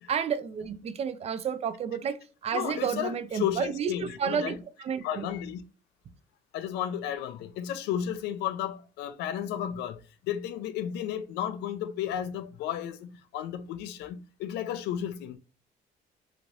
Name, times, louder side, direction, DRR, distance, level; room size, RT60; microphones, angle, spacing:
voice 1, 0.1-5.3, right 7 dB, 40° right, 0.4 m, -31 dB
voice 2, 2.5-4.6 5.0-5.6 6.5-15.4, left 10 dB, 85° left, 0.5 m, -33 dB
3.0 x 2.6 x 2.9 m
cardioid pair, 110°, 17 cm